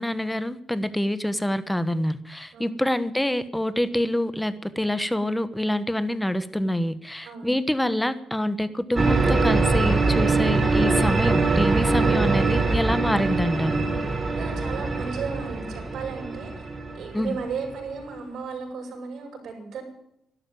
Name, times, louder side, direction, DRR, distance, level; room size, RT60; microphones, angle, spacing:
voice 1, 0.0-13.8 17.1-17.4, left 1 dB, 5° left, 13 dB, 1.2 m, -26 dB
voice 2, 7.2-7.6 14.4-16.5 16.9-19.8, right 5 dB, 65° right, 0 dB, 6.0 m, -35 dB
sound 1, 9.0-17.8, right 3 dB, 30° right, 2.4 m, -23 dB
12.0 x 12.0 x 9.2 m, 0.79 s
cardioid pair, 90°, 0 cm